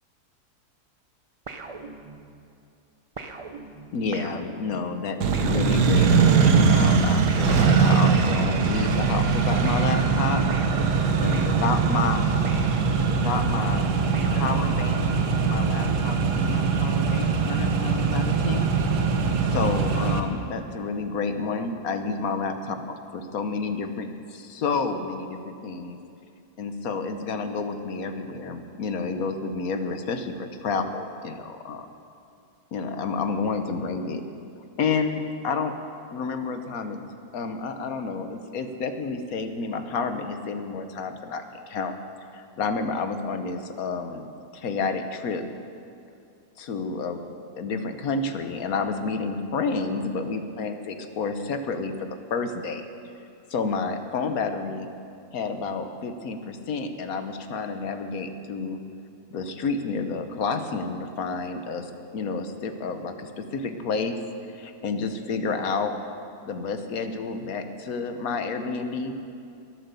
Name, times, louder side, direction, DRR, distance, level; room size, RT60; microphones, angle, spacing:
sound 1, 1.5-2.5 3.2-6.3 7.3-9.4 9.6-13.4 14.1-15.1, right 3 dB, 45° right, 0.4 m, -39 dB
voice 1, 3.9-10.4 11.2-12.3 13.1-13.9 14.3-15.0 15.4-18.7 19.5-22.8 23.1-26.0 26.6-31.9 32.7-34.2 34.5-35.7 36.1-37.0 37.3-41.9 42.3-44.3 44.5-45.4 46.6-47.2 47.6-52.9 53.5-54.9 55.3-58.8 59.3-64.2 64.5-65.9 66.5-69.2, left 4 dB, 65° left, 7 dB, 1.4 m, -30 dB
Accelerating revving vroom, 5.2-20.2, right 5 dB, 90° right, 1.6 m, -22 dB
21.5 x 7.8 x 6.9 m, 2.5 s
omnidirectional pair, 1.7 m